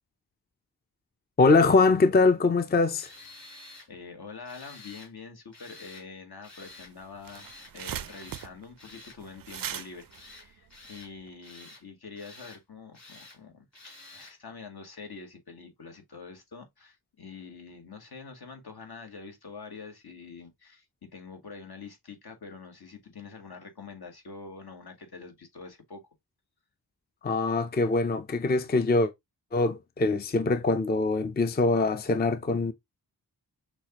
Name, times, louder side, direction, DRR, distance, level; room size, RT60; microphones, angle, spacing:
voice 1, 1.4-3.1 27.2-29.1 29.5-32.7, left 3 dB, 25° left, 0.5 m, -23 dB
Tools, 3.0-3.9 4.4-5.1 5.5-6.1 6.4-6.9 7.3-7.7 8.0-8.5 8.8-9.2 9.5-9.9 10.1-11.1 11.4-11.8 12.2-12.6 12.9-13.4 13.7-14.4, left 2 dB, 40° left, 3.0 m, -50 dB
voice 2, 3.5-7.5 7.7-26.0, left 4 dB, 65° left, 1.4 m, -46 dB
sound 1, 6.7-6.8 7.0-11.3, right 10 dB, 60° right, 0.4 m, -40 dB
6.1 x 2.4 x 2.9 m
cardioid pair, 50°, 40 cm